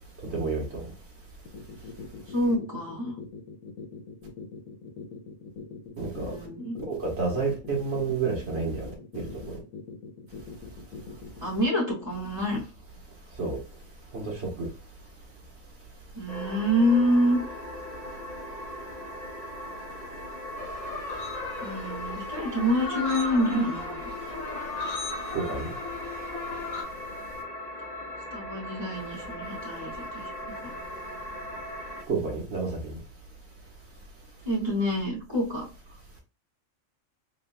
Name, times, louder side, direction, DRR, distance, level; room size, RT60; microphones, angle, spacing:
voice 1, 0.3-0.8 6.0-6.4 6.9-9.6 13.4-13.6 14.1-14.7 25.3-25.7 32.1-33.0, right 4 dB, 55° right, 0 dB, 1.6 m, -30 dB
sound 1, 1.5-11.5, left 5 dB, 85° left, 1.2 m, -42 dB
voice 2, 2.3-3.2 6.2-6.8 11.4-12.6 16.1-17.4 21.6-24.1 28.3-30.7 34.4-35.7, equal, 20° right, -6 dB, 2.5 m, -27 dB
sound 2, 16.3-32.0, left 1 dB, 35° left, 0.8 m, -39 dB
sound 3, 20.6-26.8, left 3 dB, 70° left, 1.4 m, -36 dB
4.0 x 3.9 x 2.3 m, 0.32 s
omnidirectional pair, 1.4 m